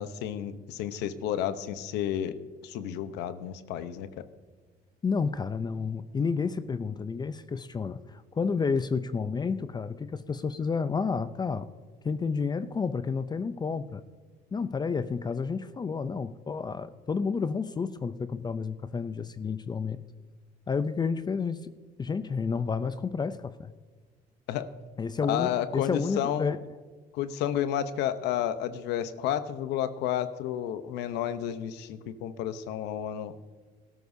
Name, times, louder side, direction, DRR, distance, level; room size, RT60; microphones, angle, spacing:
voice 1, 0.0-2.4 2.6-4.2 24.5-24.7 25.2-26.5 27.1-33.3, left 10 dB, 90° left, 11 dB, 0.8 m, -31 dB
voice 2, 5.0-11.7 12.0-14.0 14.5-20.0 20.7-21.7 22.0-23.7 25.0-26.6, left 5 dB, 25° left, 12 dB, 0.5 m, -30 dB
18.0 x 13.0 x 2.7 m, 1.5 s
cardioid pair, 110°, 17 cm